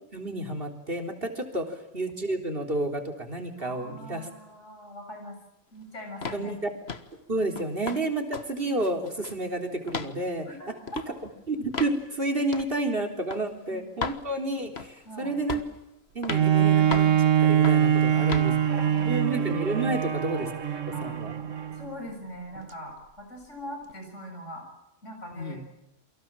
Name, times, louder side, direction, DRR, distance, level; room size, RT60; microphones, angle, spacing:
voice 1, 0.1-4.3 6.3-6.7 7.3-10.7 11.5-15.6 16.1-18.5 19.0-20.5 21.0-21.3 25.3-25.6, right 2 dB, 50° right, 4 dB, 4.0 m, -30 dB
voice 2, 3.6-5.4 5.7-6.5 10.5-10.7 11.1-11.2 13.7-13.8 15.1-15.4 18.1-19.3 20.2-20.3 20.9-21.1 21.8-24.7 25.0-25.6, equal, 75° left, 3 dB, 7.7 m, -42 dB
sound 1, 6.2-6.5 6.9-7.1 7.6-8.0 8.3-8.5 8.8-9.4 9.9-10.1 10.9-11.1 11.7-12.0 12.5-12.7 13.3-13.4 14.0-14.2 14.8-15.0 15.5-15.8 16.2-16.5 16.9-17.2 17.6-17.9 18.3-18.5, left 5 dB, 55° left, 1.7 m, -34 dB
Bowed string instrument, 16.3-21.9 22.6-22.7, right 9 dB, 90° right, 1.6 m, -23 dB
29.0 x 24.0 x 7.6 m, 0.87 s
omnidirectional pair, 1.3 m